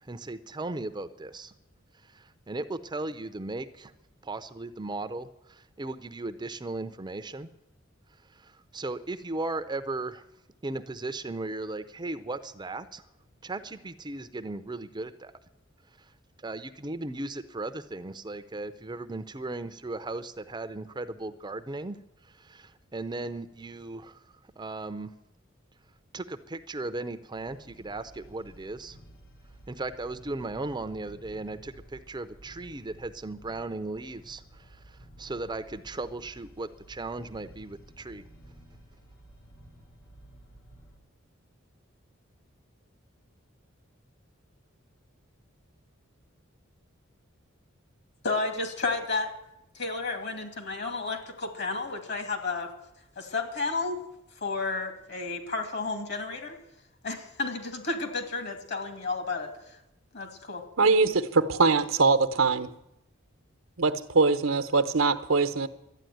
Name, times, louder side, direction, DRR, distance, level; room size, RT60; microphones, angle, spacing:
voice 1, 0.1-1.5 2.1-3.9 4.2-7.5 8.3-10.2 10.6-13.0 13.4-15.3 16.4-22.0 22.3-24.2 24.6-25.1 26.1-29.0 29.7-38.2, right 2 dB, 20° right, 10 dB, 0.6 m, -37 dB
sound 1, 27.3-41.0, right 1 dB, 90° left, 3.3 m, -53 dB
voice 2, 48.2-49.3 49.7-52.7 53.2-54.0 54.4-56.6 57.0-59.5 60.1-60.6, left 3 dB, 55° left, 6 dB, 2.6 m, -32 dB
voice 3, 60.8-62.7 63.8-65.7, right 4 dB, 80° right, 10 dB, 0.9 m, -23 dB
12.5 x 9.7 x 9.3 m, 0.86 s
head